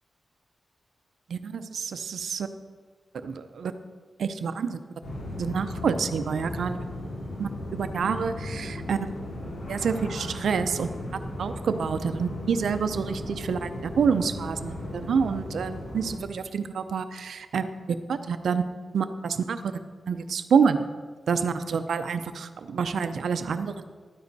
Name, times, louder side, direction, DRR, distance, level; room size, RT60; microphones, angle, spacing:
voice 1, 1.3-2.5 3.2-3.7 4.2-4.8 5.4-6.8 7.4-9.1 9.7-10.9 11.4-18.6 18.9-19.8 20.1-20.9 21.3-23.8, right 6 dB, 85° right, 9 dB, 0.6 m, -27 dB
sound 1, 5.0-16.2, left 1 dB, 85° left, 2.9 m, -36 dB
12.5 x 9.7 x 4.1 m, 1.5 s
wide cardioid pair, 110°, 0 cm